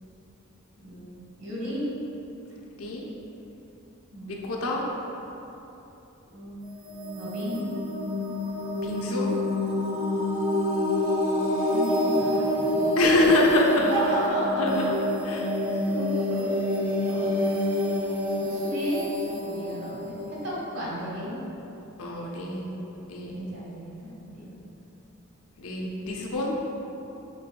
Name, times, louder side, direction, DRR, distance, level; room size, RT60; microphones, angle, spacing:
voice 1, 0.8-1.9 4.1-4.4 6.3-6.6 7.2-7.7 11.7-13.1 13.7-14.9 15.5-16.5 17.1-17.6 18.4-21.3 23.3-24.6, right 1 dB, 60° right, -6 dB, 1.2 m, -34 dB
voice 2, 4.3-4.9 8.8-9.3 13.0-13.9 14.6-14.8 15.3-15.5 22.0-22.7 23.1-23.4 25.6-26.6, left 2 dB, 85° left, -1 dB, 0.6 m, -25 dB
sound 1, 6.6-21.3, left 1 dB, 40° right, 0.6 m, -27 dB
6.1 x 3.3 x 2.2 m, 3.0 s
head